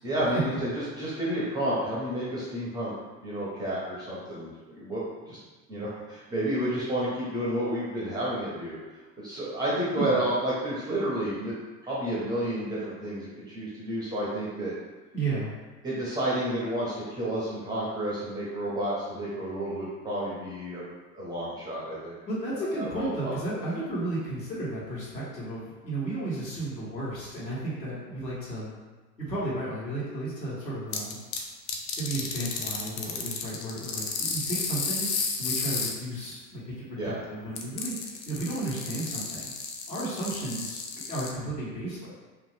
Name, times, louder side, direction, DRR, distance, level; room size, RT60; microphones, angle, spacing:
voice 1, 0.0-2.9 3.2-5.4 5.7-8.8 9.2-11.5 11.8-14.7 15.8-20.9 21.1-22.1 22.8-23.6 37.0-37.2, right 1 dB, 10° right, -7 dB, 0.4 m, -31 dB
voice 2, 15.1-15.5 22.3-28.7 29.2-31.2 32.0-35.1 35.4-39.5 39.9-40.8 41.1-42.1, right 2 dB, 85° left, -8 dB, 1.4 m, -33 dB
sound 1, 30.9-31.4 31.7-35.9 37.6-41.3, left 5 dB, 45° left, 0.6 m, -32 dB
2.7 x 2.5 x 3.3 m, 1.2 s
figure-of-eight pair, 85°, 49 cm